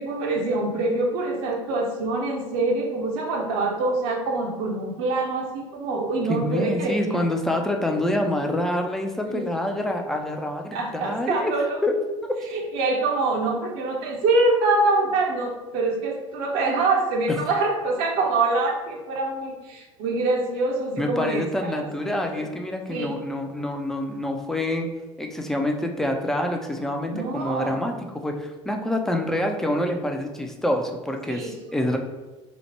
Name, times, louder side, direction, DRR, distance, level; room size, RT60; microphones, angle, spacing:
voice 1, 0.0-7.2 9.3-9.4 10.7-11.7 12.5-22.5 22.9-23.1 27.1-27.7 31.3-31.5, right 2 dB, 55° right, 0 dB, 0.6 m, -25 dB
voice 2, 6.3-11.5 11.8-12.0 12.2-12.3 17.3-17.4 21.0-24.9 25.2-32.0, left 1 dB, ahead, 3 dB, 0.3 m, -26 dB
3.0 x 2.0 x 3.0 m, 1.1 s
figure-of-eight pair, 65°, 17 cm